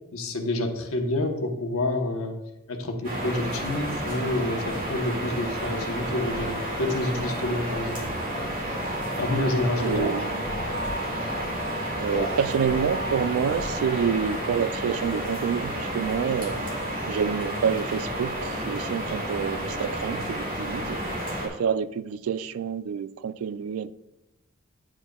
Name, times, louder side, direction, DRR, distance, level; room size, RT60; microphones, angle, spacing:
voice 1, 0.1-2.4 2.7-8.0 9.2-10.1, left 1 dB, 80° left, 1.1 m, -28 dB
sound 1, 3.0-21.5, right 1 dB, 40° right, 2.0 m, -31 dB
sound 2, 5.6-14.3, equal, 45° left, 1.7 m, -37 dB
voice 2, 9.8-10.4 12.0-16.6 17.1-21.0 21.4-23.9, right 7 dB, 75° right, 0.3 m, -28 dB
9.6 x 7.5 x 2.3 m
head